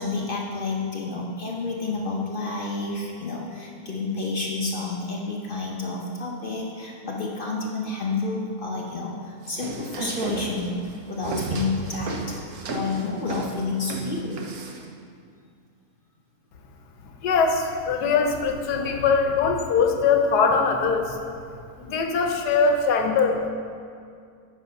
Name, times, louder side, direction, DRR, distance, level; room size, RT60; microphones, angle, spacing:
voice 1, 0.0-10.7 11.1-12.4 12.7-14.5 18.7-19.0, left 3 dB, 45° left, -2 dB, 0.8 m, -30 dB
sound 1, 9.4-14.9, right 2 dB, 65° right, 1.3 m, -33 dB
voice 2, 17.2-21.2 21.8-23.5, left 5 dB, 80° left, 4 dB, 1.3 m, -22 dB
8.0 x 6.3 x 5.2 m, 2.3 s
omnidirectional pair, 1.7 m